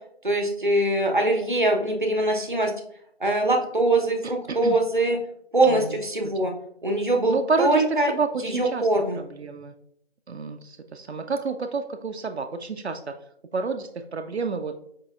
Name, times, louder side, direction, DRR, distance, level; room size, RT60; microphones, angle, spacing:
voice 1, 0.2-2.7 3.2-5.2 5.5-6.5 6.8-8.1 8.4-9.2, right 2 dB, 50° right, 3 dB, 0.7 m, -22 dB
voice 2, 4.2-4.8 5.6-6.0 6.2-6.5 7.3-8.9 9.1-9.7 10.3-13.1 13.5-14.7, right 4 dB, 85° right, 6 dB, 0.5 m, -29 dB
5.1 x 3.1 x 2.3 m, 0.71 s
figure-of-eight pair, 180°, 32 cm